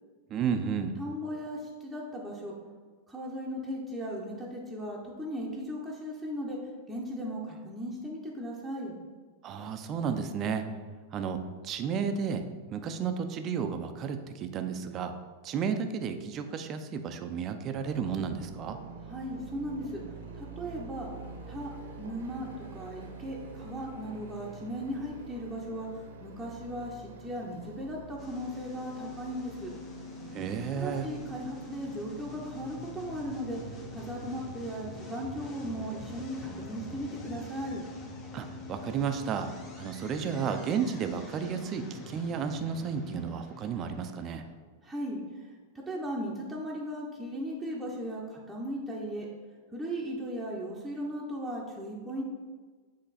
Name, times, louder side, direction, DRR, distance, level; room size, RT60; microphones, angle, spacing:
voice 1, 0.3-1.0 9.4-10.6 11.1-12.4 12.7-15.1 15.4-18.8 30.3-31.1 38.3-39.5 39.8-44.4, right 6 dB, 35° right, 7 dB, 0.5 m, -32 dB
voice 2, 1.0-2.5 3.1-6.6 6.9-8.9 19.0-20.0 20.3-21.1 21.5-21.7 22.0-29.7 30.7-33.6 33.9-37.8 44.8-49.3 49.7-52.2, equal, 5° right, -5 dB, 0.9 m, -37 dB
sound 1, 17.7-34.7, right 4 dB, 85° right, 1.0 m, -47 dB
sound 2, 28.2-44.5, left 2 dB, 35° left, 1.2 m, -45 dB
7.8 x 2.9 x 4.2 m, 1.5 s
hypercardioid pair, 115°, 0 cm